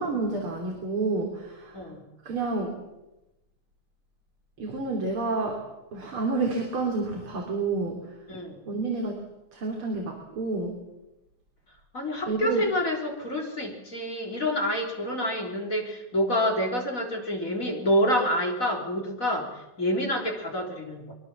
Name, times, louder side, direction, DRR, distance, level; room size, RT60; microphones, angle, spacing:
voice 1, 0.0-1.7 2.3-2.8 4.6-5.6 5.9-8.0 8.7-9.2 9.5-10.8 12.3-12.6, right 3 dB, 40° right, 1 dB, 3.9 m, -29 dB
voice 2, 11.9-21.1, equal, 25° left, 1 dB, 3.8 m, -27 dB
24.5 x 23.0 x 7.3 m, 0.96 s
omnidirectional pair, 3.7 m